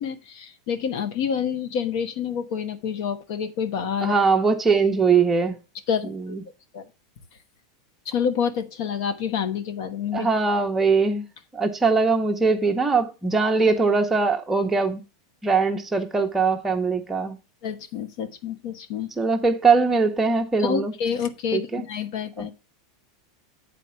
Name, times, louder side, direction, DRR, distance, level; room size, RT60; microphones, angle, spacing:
voice 1, 0.0-4.2 5.9-6.3 6.7-6.8 8.0-10.3 17.6-19.1 20.6-22.5, left 7 dB, 60° left, 1.1 m, -28 dB
voice 2, 4.0-5.6 6.0-6.4 10.1-11.3 11.5-15.0 15.4-17.4 19.2-20.9 21.5-21.8 22.4-22.5, right 4 dB, 10° right, 0.9 m, -21 dB
8.2 x 4.2 x 5.7 m
supercardioid pair, 145°, 2 cm